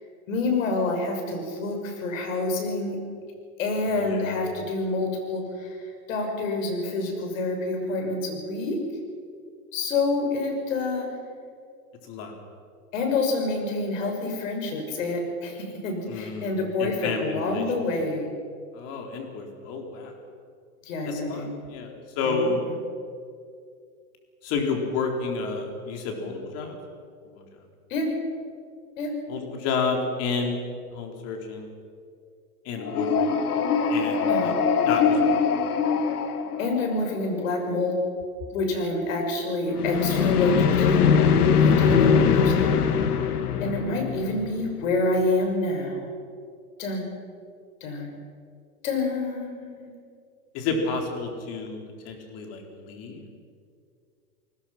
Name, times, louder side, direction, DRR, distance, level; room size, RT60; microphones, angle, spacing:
voice 1, 0.3-3.0 3.6-5.8 6.1-8.8 9.7-11.1 12.9-18.3 20.8-21.5 22.2-22.5 27.9-28.1 29.0-29.1 34.3-34.5 36.6-37.9 38.5-41.1 41.4-42.9 43.6-46.0 46.8-47.1 47.8-48.2 48.8-49.9, left 2 dB, 60° left, 3 dB, 6.6 m, -27 dB
voice 2, 4.0-4.4 12.1-12.3 16.1-17.6 18.7-20.1 21.0-22.6 24.4-26.8 27.3-27.4 29.3-30.6 30.9-31.7 32.7-33.3 33.9-34.5 34.9-35.2 50.5-51.8 52.0-53.3, left 4 dB, 35° left, 3 dB, 3.8 m, -30 dB
sound 1, 32.8-37.1 39.7-44.7, left 6 dB, 85° left, 1.9 m, -22 dB
28.5 x 20.0 x 5.9 m, 2.3 s
hypercardioid pair, 145°, 45 cm